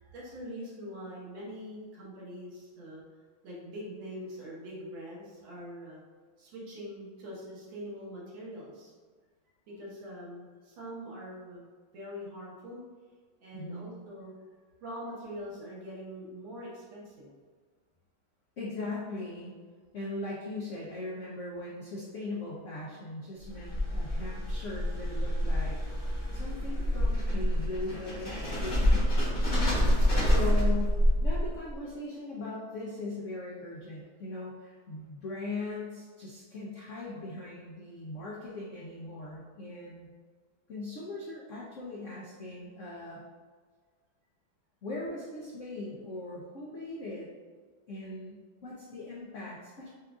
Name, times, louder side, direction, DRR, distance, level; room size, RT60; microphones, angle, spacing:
voice 1, 0.0-3.0 3.4-6.0 6.4-8.9 9.7-11.6 11.9-12.8 13.4-14.3 14.8-17.3 29.4-30.5, equal, 70° right, -6 dB, 2.0 m, -43 dB
voice 2, 13.5-13.9 18.6-19.5 19.9-25.8 26.3-29.1 30.2-40.1 40.7-43.2 44.8-47.3 47.9-49.9, left 2 dB, 85° left, -5 dB, 0.6 m, -39 dB
sound 1, 23.4-31.7, equal, 40° left, 0.9 m, -27 dB
7.4 x 2.5 x 2.4 m, 1.5 s
omnidirectional pair, 2.3 m